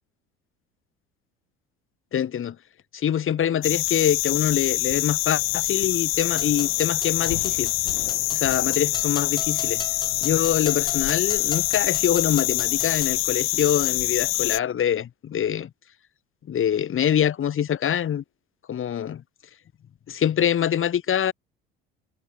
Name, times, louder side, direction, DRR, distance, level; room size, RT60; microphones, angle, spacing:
voice 1, 2.1-2.6 2.9-7.7 8.3-9.8 10.2-15.7 16.5-18.2 18.7-19.2 20.1-21.3, left 9 dB, 45° left, 5.0 m, -24 dB
sound 1, 3.6-14.6, left 22 dB, 80° left, 0.6 m, -25 dB
sound 2, 6.4-13.2, left 3 dB, 15° left, 5.6 m, -40 dB
hypercardioid pair, 70°, 29 cm